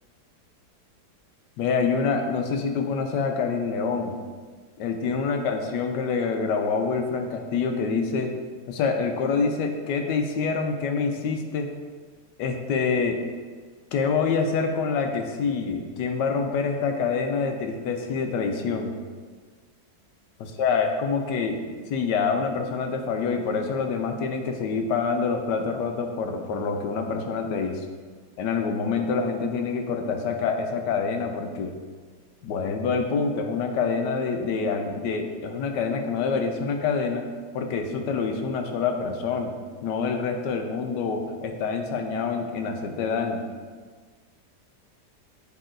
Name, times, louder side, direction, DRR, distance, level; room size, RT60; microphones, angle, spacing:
voice 1, 1.6-4.2 4.8-8.3 8.7-11.7 12.4-13.2 13.9-18.9 20.6-27.9 28.4-31.8 32.4-37.3 37.5-39.5 39.8-43.4, left 5 dB, 90° left, 4 dB, 1.3 m, -26 dB
8.4 x 3.2 x 3.8 m, 1.5 s
omnidirectional pair, 1.8 m